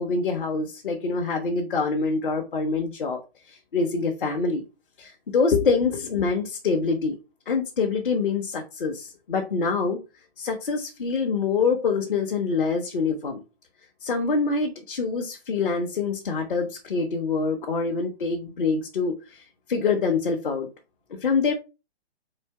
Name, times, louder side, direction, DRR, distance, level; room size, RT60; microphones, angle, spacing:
voice 1, 0.0-3.2 3.5-4.6 5.0-7.2 7.5-10.0 10.4-13.4 14.0-20.7 21.1-21.5, left 4 dB, 50° left, 0.9 m, -25 dB
4.3 x 2.8 x 4.5 m
figure-of-eight pair, 130°, 32 cm